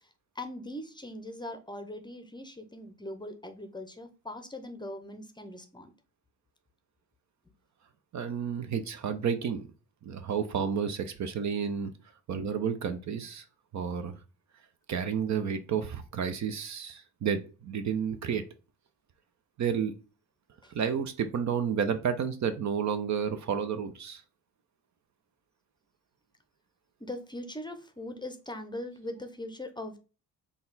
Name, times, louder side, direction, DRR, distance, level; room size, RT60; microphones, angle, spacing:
voice 1, 0.4-5.9 18.3-18.4 20.6-20.7 27.0-30.0, left 1 dB, 10° left, 7 dB, 0.7 m, -41 dB
voice 2, 8.1-9.7 10.0-11.9 12.3-13.4 13.7-14.2 14.9-18.4 19.6-19.9 20.7-24.2, right 7 dB, 45° right, 9 dB, 0.6 m, -31 dB
3.9 x 2.3 x 3.9 m, 0.33 s
hypercardioid pair, 60°, 39 cm